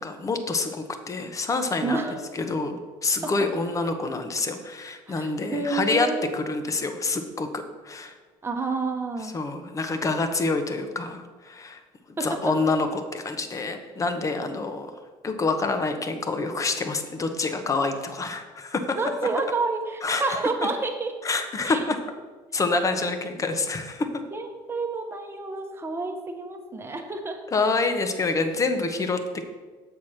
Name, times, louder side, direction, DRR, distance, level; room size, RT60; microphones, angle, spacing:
voice 1, 0.0-2.0 2.3-6.1 6.3-8.1 9.3-11.8 12.1-14.9 15.2-19.0 20.0-20.2 21.2-22.0 22.5-24.2 27.5-29.4, left 3 dB, 25° left, 7 dB, 0.9 m, -27 dB
voice 2, 1.8-2.2 3.2-3.3 5.1-6.3 8.4-9.3 12.2-12.7 18.9-21.1 21.7-21.8 22.7-22.9 24.3-27.4, right 3 dB, 20° right, 4 dB, 1.1 m, -29 dB
7.0 x 4.5 x 6.4 m, 1.4 s
supercardioid pair, 100°, 12 cm